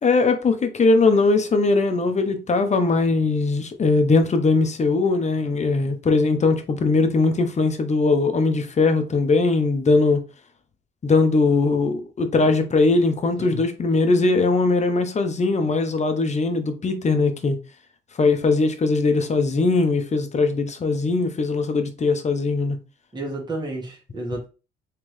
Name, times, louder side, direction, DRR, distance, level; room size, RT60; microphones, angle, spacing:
voice 1, 0.0-10.2 11.0-17.6 18.2-22.8, left 3 dB, 35° left, 0.9 m, -20 dB
voice 2, 23.1-24.5, right 2 dB, 20° right, 1.5 m, -31 dB
3.6 x 3.3 x 3.2 m
cardioid pair, 90°, 20 cm